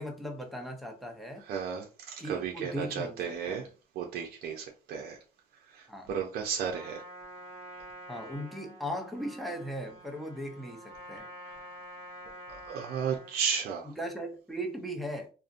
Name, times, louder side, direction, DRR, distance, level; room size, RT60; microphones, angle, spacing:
voice 1, 0.0-1.4 2.2-3.7 5.9-6.1 8.1-11.3 13.8-15.3, equal, ahead, 0.6 m, -38 dB
voice 2, 1.5-3.7 4.0-5.2 5.7-7.0 12.5-13.9, right 7 dB, 65° right, 0.5 m, -34 dB
Trumpet, 6.5-13.4, equal, 45° right, 1.1 m, -47 dB
2.5 x 2.1 x 2.5 m
cardioid pair, 110°, 17 cm